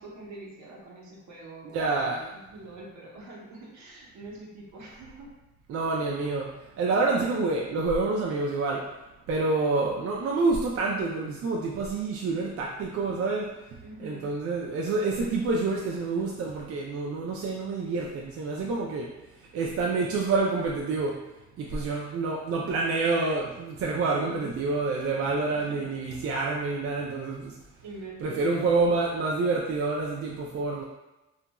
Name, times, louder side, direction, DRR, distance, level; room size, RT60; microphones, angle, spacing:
voice 1, 0.0-5.3 5.9-6.1 13.8-14.3 21.6-21.8 24.1-25.9 27.8-28.7, right 2 dB, 70° right, -3 dB, 0.9 m, -45 dB
voice 2, 1.7-2.2 5.7-6.5 6.8-8.8 9.3-13.5 14.0-19.1 19.5-21.2 21.6-27.5 28.2-30.8, right 3 dB, 50° right, -2 dB, 0.4 m, -27 dB
2.9 x 2.4 x 2.2 m, 0.98 s
cardioid pair, 90°, 30 cm